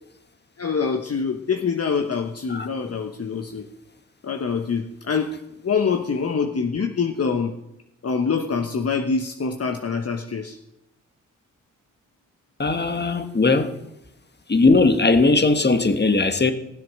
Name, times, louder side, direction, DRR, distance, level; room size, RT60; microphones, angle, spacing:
voice 1, 0.6-3.7 4.2-5.3 5.6-7.5 8.0-10.6, left 5 dB, 45° left, 5 dB, 1.1 m, -25 dB
voice 2, 12.6-13.7 14.5-16.5, left 3 dB, 30° left, 9 dB, 1.5 m, -18 dB
16.5 x 7.6 x 6.5 m, 0.88 s
supercardioid pair, 45°, 33 cm